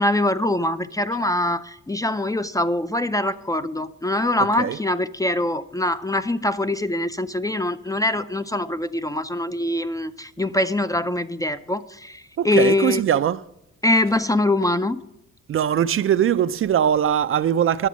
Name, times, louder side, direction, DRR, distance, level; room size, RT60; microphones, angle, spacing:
voice 1, 0.0-13.0 13.8-15.0, left 2 dB, 10° left, 0.4 m, -23 dB
voice 2, 12.4-13.4 15.5-17.9, right 9 dB, 45° right, 0.4 m, -21 dB
11.0 x 7.4 x 6.2 m
cardioid pair, 90°, 30 cm